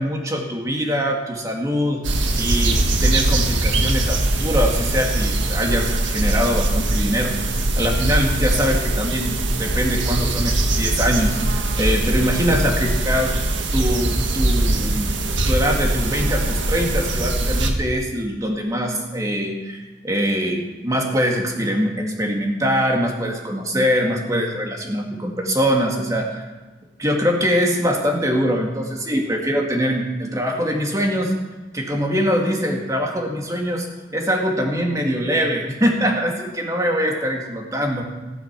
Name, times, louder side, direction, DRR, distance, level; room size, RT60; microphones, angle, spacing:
voice 1, 0.0-2.0 2.4-11.4 11.8-13.4 13.7-15.2 15.4-26.5 27.0-31.3 31.7-38.0, equal, 20° right, 1 dB, 2.2 m, -23 dB
sound 1, 2.0-17.7, right 2 dB, 90° right, 1.6 m, -21 dB
15.5 x 12.0 x 6.0 m, 1.2 s
head